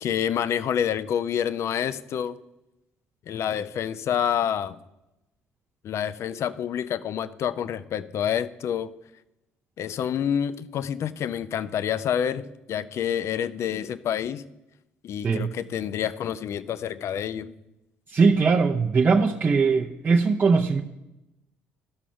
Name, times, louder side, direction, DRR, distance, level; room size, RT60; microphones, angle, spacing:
voice 1, 0.0-2.4 3.3-4.8 5.8-8.9 9.8-14.4 15.0-17.5, left 9 dB, 50° left, 15 dB, 0.5 m, -28 dB
voice 2, 15.2-15.5 18.1-20.8, right 4 dB, 30° right, 1 dB, 0.7 m, -20 dB
12.0 x 6.1 x 5.7 m, 0.93 s
figure-of-eight pair, 50°, 6 cm